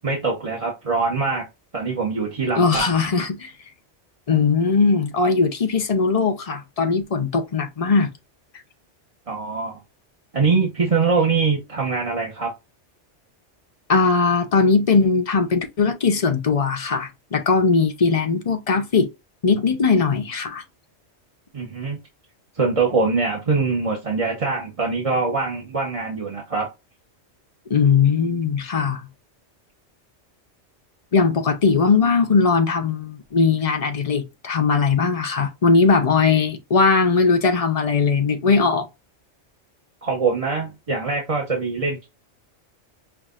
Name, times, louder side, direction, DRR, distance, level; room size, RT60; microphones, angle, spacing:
voice 1, 0.0-1.5 1.7-2.9 9.3-9.8 10.3-12.5 21.5-22.0 22.5-26.7 40.0-42.1, right 4 dB, 30° right, 1.0 m, -23 dB
voice 2, 2.6-3.5 4.3-8.1 13.9-19.1 19.4-20.6 27.7-29.1 31.1-38.9, left 4 dB, 35° left, 0.7 m, -19 dB
5.8 x 2.5 x 2.4 m
omnidirectional pair, 1.2 m